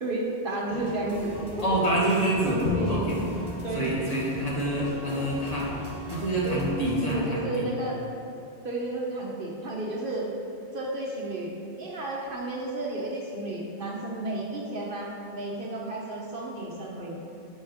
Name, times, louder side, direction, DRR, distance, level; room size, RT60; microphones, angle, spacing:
voice 1, 0.0-1.3 1.6-1.8 2.4-3.0 3.6-3.9 6.4-6.6 7.0-8.0 8.6-10.3 10.7-11.5 11.8-17.2, right 2 dB, 55° right, -2 dB, 1.2 m, -32 dB
sound 1, 0.7-7.2, right 1 dB, 20° right, 1.2 m, -40 dB
voice 2, 1.6-2.6 2.9-3.2 3.7-5.8 6.1-7.7, right 1 dB, 35° left, -5 dB, 1.6 m, -27 dB
Bowed string instrument, 2.7-5.8, left 3 dB, 85° left, 1.3 m, -35 dB
10.5 x 6.6 x 3.5 m, 2.6 s
omnidirectional pair, 1.1 m